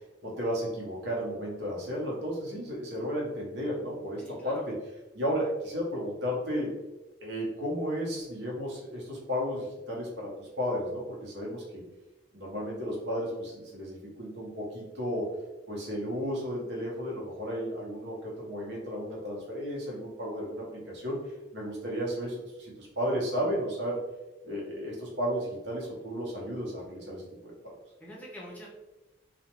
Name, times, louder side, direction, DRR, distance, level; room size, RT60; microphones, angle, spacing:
voice 1, 0.2-4.8 5.1-6.7 7.2-11.8 12.3-15.3 15.7-21.2 21.5-24.0 24.4-27.5, equal, 70° right, -3 dB, 0.8 m, -33 dB
voice 2, 4.2-4.7 28.0-28.7, equal, 10° left, -4 dB, 0.4 m, -45 dB
2.4 x 2.1 x 2.9 m, 1.1 s
head